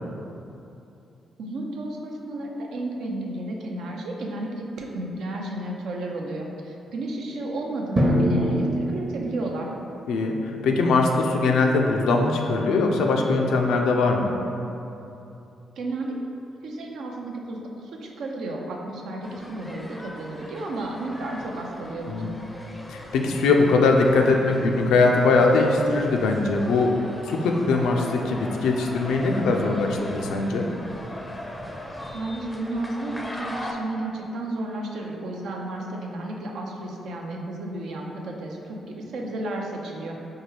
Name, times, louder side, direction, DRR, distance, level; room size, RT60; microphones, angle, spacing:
voice 1, 1.4-9.7 15.8-16.2 16.6-22.3 32.1-40.2, right 2 dB, 70° right, 0 dB, 0.4 m, -32 dB
Drum, 8.0-9.9, equal, 20° right, 0.7 m, -24 dB
voice 2, 10.1-14.3 22.1-22.4 22.9-30.7, left 3 dB, 75° left, 2 dB, 0.3 m, -21 dB
sound 1, 19.2-33.7, left 1 dB, 15° left, 0.5 m, -39 dB
4.4 x 2.3 x 3.2 m, 2.8 s
hypercardioid pair, 45°, 0 cm